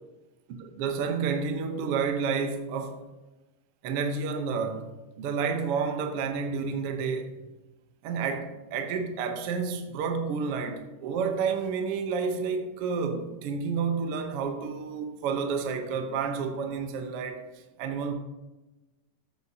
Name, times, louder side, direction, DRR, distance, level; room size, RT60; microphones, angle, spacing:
voice 1, 0.6-3.0 3.8-4.9 5.2-7.3 8.0-17.5 17.8-18.1, right 5 dB, 65° right, 1.5 m, -30 dB
14.0 x 8.2 x 2.8 m
omnidirectional pair, 3.5 m